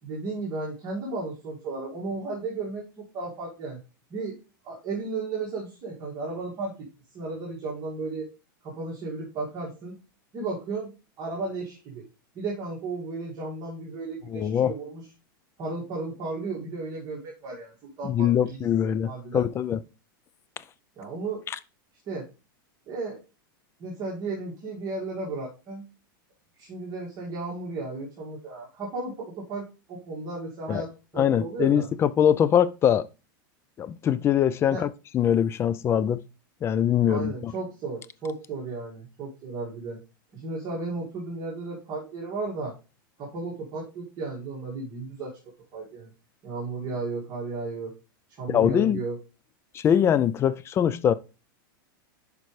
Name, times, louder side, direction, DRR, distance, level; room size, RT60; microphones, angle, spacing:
voice 1, 0.0-3.8 4.1-4.4 4.6-6.9 7.1-8.3 8.6-10.0 10.3-12.1 12.3-15.0 15.6-19.4 21.0-21.4 22.1-22.2 22.9-23.2 23.8-25.9 26.6-31.9 34.7-34.8 37.1-40.0 40.3-42.7 43.2-45.4 45.7-46.1 46.4-47.9 48.4-49.2, right 3 dB, 35° right, 2.2 m, -34 dB
voice 2, 14.3-14.7 18.0-19.8 30.7-30.8 31.2-33.1 33.8-36.2 36.6-37.5 48.5-49.0 49.7-51.1, left 9 dB, 20° left, 0.4 m, -23 dB
11.0 x 5.1 x 3.2 m
supercardioid pair, 135°, 12 cm